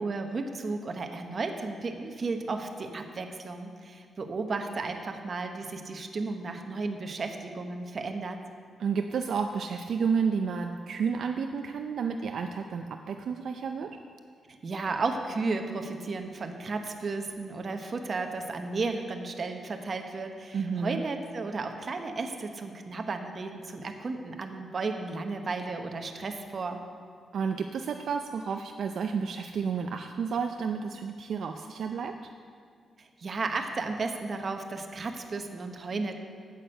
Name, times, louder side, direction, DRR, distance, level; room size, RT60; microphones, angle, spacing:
voice 1, 0.0-8.4 14.6-26.8 33.0-36.1, right 3 dB, 45° right, 5 dB, 1.0 m, -34 dB
voice 2, 8.8-13.9 20.5-21.0 27.3-32.1, right 6 dB, 70° right, 5 dB, 0.5 m, -31 dB
8.9 x 8.3 x 6.5 m, 2.1 s
cardioid pair, 105°, 0 cm